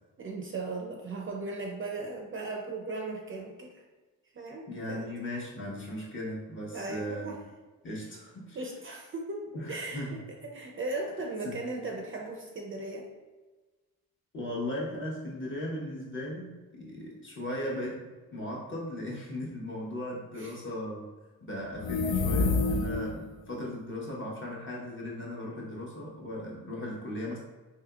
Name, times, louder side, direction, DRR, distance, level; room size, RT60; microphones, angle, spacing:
voice 1, 0.2-3.8 4.3-5.1 6.7-7.4 8.5-10.1 10.5-13.1 20.4-20.6, right 3 dB, 35° right, 1 dB, 0.5 m, -37 dB
voice 2, 4.7-7.3 7.8-8.6 9.5-10.2 11.4-11.5 14.3-21.1 21.4-27.4, left 1 dB, 35° left, -4 dB, 1.1 m, -37 dB
sound 1, 21.7-23.3, left 3 dB, 80° left, 0.5 m, -27 dB
3.5 x 2.9 x 2.3 m, 1.2 s
cardioid pair, 75°, 36 cm